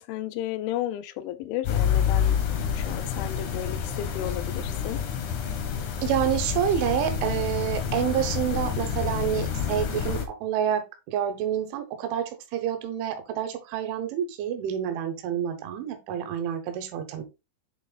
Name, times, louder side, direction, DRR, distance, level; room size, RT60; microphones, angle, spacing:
voice 1, 0.0-2.4 2.8-5.0, left 13 dB, 85° left, 3.0 m, -33 dB
sound 1, 1.6-10.3, left 8 dB, 70° left, 1.9 m, -28 dB
voice 2, 6.0-17.2, right 9 dB, 85° right, 3.5 m, -28 dB
8.0 x 3.5 x 3.8 m
omnidirectional pair, 5.3 m